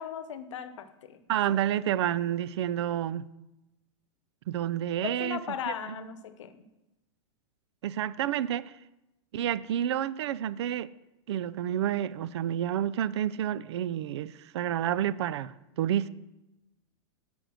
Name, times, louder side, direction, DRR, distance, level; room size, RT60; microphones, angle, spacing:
voice 1, 0.0-1.2 5.0-6.6, left 8 dB, 75° left, 0.9 m, -37 dB
voice 2, 1.3-3.3 4.5-5.4 5.7-6.0 7.8-8.7 9.3-10.9 11.3-16.1, right 11 dB, 60° right, 0.4 m, -29 dB
9.1 x 5.3 x 6.2 m
supercardioid pair, 165°, 16 cm